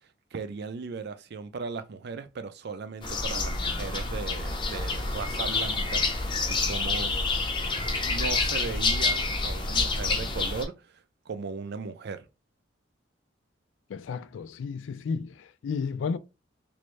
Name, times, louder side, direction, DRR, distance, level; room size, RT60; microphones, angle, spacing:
voice 1, 0.3-6.0 6.5-7.1 8.0-12.3, right 4 dB, 60° right, 0.5 m, -37 dB
sound 1, 3.0-10.6, left 3 dB, 25° left, 0.6 m, -28 dB
voice 2, 13.9-16.2, left 5 dB, 85° left, 0.3 m, -32 dB
3.1 x 2.6 x 3.1 m
head